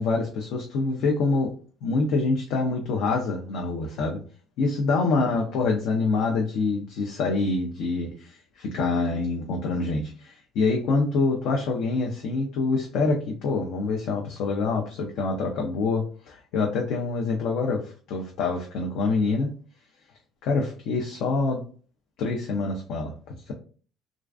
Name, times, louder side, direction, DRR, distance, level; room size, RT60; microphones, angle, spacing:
voice 1, 0.0-1.5 1.8-4.2 4.6-19.5 20.4-21.6 22.2-23.1, left 3 dB, 75° left, 1 dB, 0.4 m, -26 dB
2.4 x 2.2 x 2.3 m, 0.41 s
supercardioid pair, 80°, 0 cm